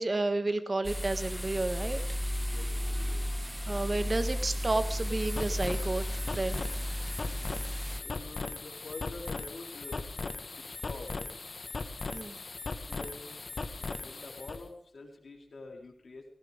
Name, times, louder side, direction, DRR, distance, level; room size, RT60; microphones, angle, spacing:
voice 1, 0.0-2.0 3.7-6.0 6.3-6.6 12.1-12.4, right 2 dB, 45° right, 9 dB, 1.5 m, -31 dB
sound 1, 0.8-8.0, equal, ahead, 0.6 m, -34 dB
voice 2, 2.5-3.3 8.0-11.3 12.9-16.2, left 3 dB, 75° left, 0 dB, 4.2 m, -47 dB
sound 2, 4.9-14.6, left 3 dB, 60° left, 1.5 m, -39 dB
18.5 x 17.5 x 3.7 m, 0.66 s
wide cardioid pair, 70°, 0 cm